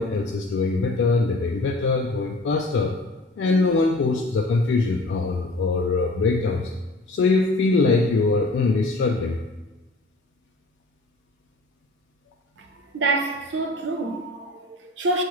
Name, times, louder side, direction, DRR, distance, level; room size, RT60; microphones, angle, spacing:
voice 1, 0.0-2.9 3.4-6.7 7.1-9.4, left 3 dB, 85° left, 0.3 m, -22 dB
voice 2, 12.9-15.2, right 2 dB, 85° right, 0.5 m, -26 dB
6.9 x 2.4 x 3.0 m
head